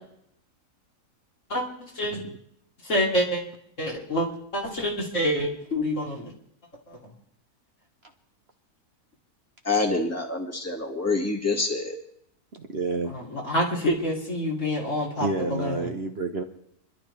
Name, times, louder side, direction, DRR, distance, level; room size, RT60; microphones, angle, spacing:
voice 1, 1.5-2.2 2.9-3.4 3.8-4.3 4.5-6.3 13.1-15.9, equal, 50° left, -2 dB, 3.3 m, -27 dB
voice 2, 9.6-12.0, left 3 dB, 10° left, 2 dB, 2.0 m, -26 dB
voice 3, 12.5-13.1 15.2-16.4, right 3 dB, 45° right, 4 dB, 1.2 m, -29 dB
29.5 x 12.0 x 3.4 m, 0.73 s
omnidirectional pair, 1.6 m